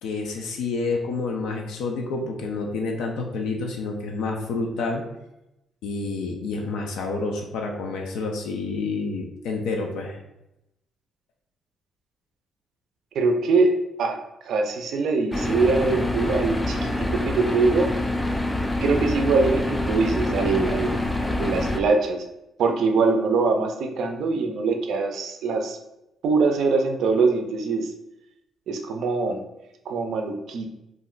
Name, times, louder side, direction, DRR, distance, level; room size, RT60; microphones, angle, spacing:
voice 1, 0.0-5.0 5.8-10.2, left 3 dB, 85° left, 1 dB, 0.4 m, -29 dB
voice 2, 13.2-13.7 14.0-14.2 14.5-17.9 18.8-20.9 21.2-22.2 22.6-25.8 26.2-27.9 28.7-29.4 29.9-30.7, right 4 dB, 70° right, 5 dB, 0.4 m, -23 dB
sound 1, 15.3-21.8, left 1 dB, 10° left, 0.3 m, -26 dB
2.5 x 2.1 x 3.7 m, 0.89 s
cardioid pair, 90°, 0 cm